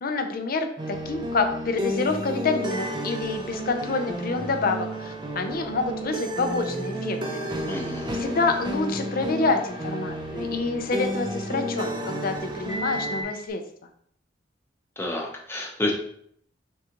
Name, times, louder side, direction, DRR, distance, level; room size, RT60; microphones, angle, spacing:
voice 1, 0.0-7.4 8.1-13.6, left 3 dB, 50° left, 6 dB, 0.6 m, -27 dB
sound 1, 0.8-13.2, equal, 25° right, 0.5 m, -32 dB
Microwave oven, 2.7-13.5, left 1 dB, 30° left, 1.2 m, -42 dB
voice 2, 7.7-8.2 15.0-15.9, left 2 dB, 15° left, -1 dB, 0.8 m, -30 dB
6.2 x 2.5 x 2.9 m, 0.65 s
head